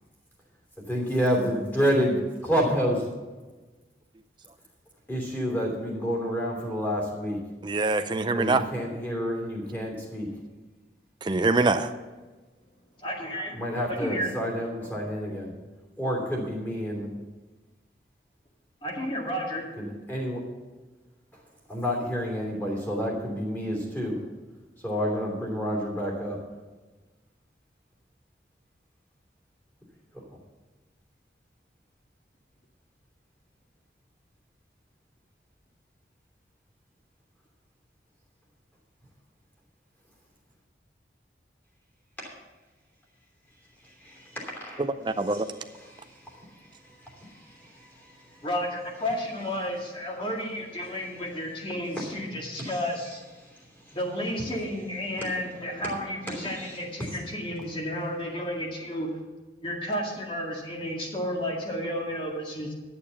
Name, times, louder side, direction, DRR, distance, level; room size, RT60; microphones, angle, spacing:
voice 1, 0.8-3.1 5.1-7.4 8.3-10.3 13.5-15.5 16.0-17.1 19.8-20.4 21.7-24.2 24.8-26.4 42.2-42.3 43.8-44.8 45.9-48.5 51.9-52.0 52.6-52.8 53.4-54.0 56.3-56.8, equal, 10° left, -2 dB, 2.9 m, -29 dB
voice 2, 7.6-8.7 11.2-11.9 44.8-45.5, right 3 dB, 25° right, 8 dB, 0.4 m, -24 dB
voice 3, 13.0-13.5 13.9-14.3 14.8-15.0 18.8-19.7 48.4-53.2 53.9-59.1 59.6-62.7, equal, 30° left, 0 dB, 2.0 m, -32 dB
11.0 x 7.0 x 7.0 m, 1.2 s
head